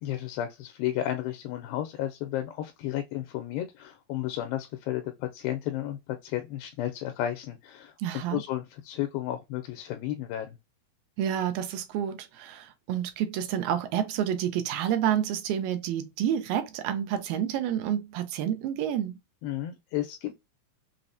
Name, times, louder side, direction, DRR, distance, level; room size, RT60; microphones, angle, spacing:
voice 1, 0.0-10.6 19.4-20.3, left 12 dB, 85° left, 2.3 m, -33 dB
voice 2, 8.0-8.4 11.2-19.2, right 10 dB, 85° right, 2.3 m, -29 dB
5.8 x 2.0 x 2.5 m
omnidirectional pair, 4.1 m